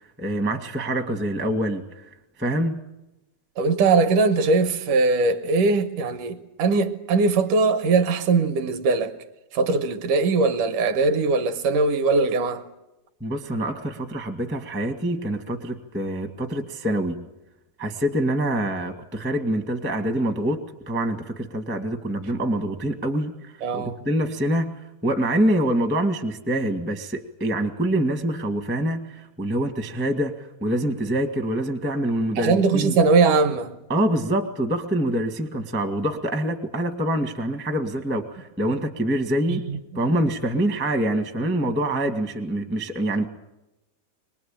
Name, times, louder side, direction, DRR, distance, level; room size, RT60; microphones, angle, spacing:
voice 1, 0.0-2.8 13.2-17.2 17.8-33.0 33.9-39.6 39.9-43.2, right 1 dB, 10° right, 0.6 m, -25 dB
voice 2, 3.6-9.1 9.5-12.6 23.6-24.0 32.4-33.7 39.5-39.6, right 4 dB, 70° right, 2.4 m, -20 dB
24.0 x 20.5 x 8.9 m
omnidirectional pair, 4.4 m